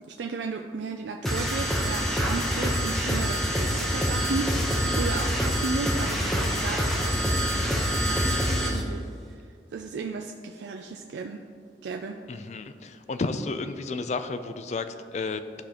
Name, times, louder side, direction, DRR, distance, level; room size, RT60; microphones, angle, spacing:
voice 1, 0.1-9.4 9.7-11.4 11.8-12.2, right 4 dB, 90° right, 4 dB, 0.4 m, -35 dB
sound 1, 1.2-8.8, equal, ahead, 0.9 m, -26 dB
voice 2, 12.3-15.6, left 3 dB, 40° left, 10 dB, 0.4 m, -32 dB
13.0 x 4.9 x 2.9 m, 2.2 s
head